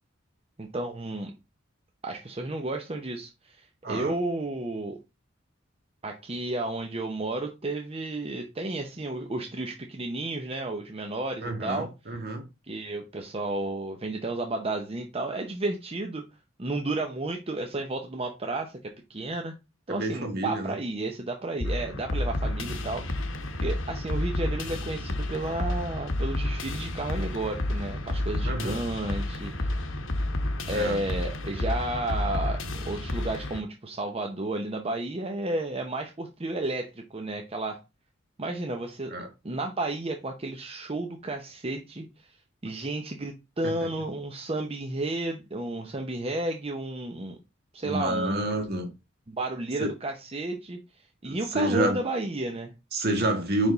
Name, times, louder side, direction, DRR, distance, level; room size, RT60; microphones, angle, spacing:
voice 1, 0.6-1.3 2.0-5.0 6.0-11.9 12.7-16.2 16.6-19.5 19.9-23.0 23.6-29.9 30.7-37.8 38.4-39.1 39.4-42.3 42.6-47.4 47.7-48.5 49.3-50.8 51.2-52.7, right 2 dB, 30° right, 0.7 m, -32 dB
voice 2, 11.4-12.4 19.9-20.7 28.4-28.8 30.7-31.0 39.1-39.3 43.6-43.7 47.8-48.9 49.8-49.9 51.2-52.0 52.9-53.7, right 1 dB, 55° right, 1.7 m, -28 dB
sound 1, 21.6-33.6, left 1 dB, 75° left, 1.0 m, -30 dB
5.3 x 5.1 x 3.9 m
head